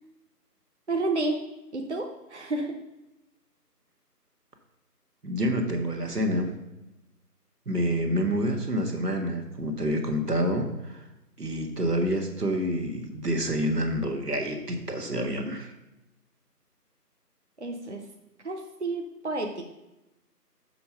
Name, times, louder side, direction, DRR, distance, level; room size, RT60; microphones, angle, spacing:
voice 1, 0.9-1.4 1.7-2.7 17.6-18.0 18.4-19.7, right 2 dB, 45° right, 2 dB, 0.8 m, -30 dB
voice 2, 5.2-6.5 7.6-11.0 11.4-15.7, equal, 75° right, 4 dB, 1.6 m, -28 dB
6.9 x 4.3 x 6.7 m, 0.96 s
figure-of-eight pair, 165°, 48 cm